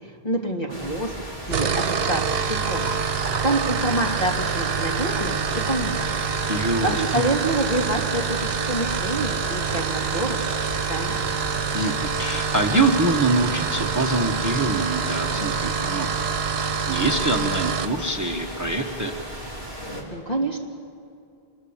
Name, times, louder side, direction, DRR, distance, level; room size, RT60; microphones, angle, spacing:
voice 1, 0.0-6.2 6.8-10.4 10.8-11.2 20.1-20.6, right 2 dB, 40° left, 0 dB, 2.8 m, -27 dB
sound 1, 0.7-20.0, right 1 dB, 85° left, 3.9 m, -36 dB
sound 2, 1.4-18.0, right 6 dB, 70° right, 1.1 m, -26 dB
voice 2, 6.5-7.2 11.7-16.2 16.6-19.1, right 2 dB, 20° right, 4 dB, 1.2 m, -24 dB
26.5 x 21.5 x 7.2 m, 2.5 s
omnidirectional pair, 1.0 m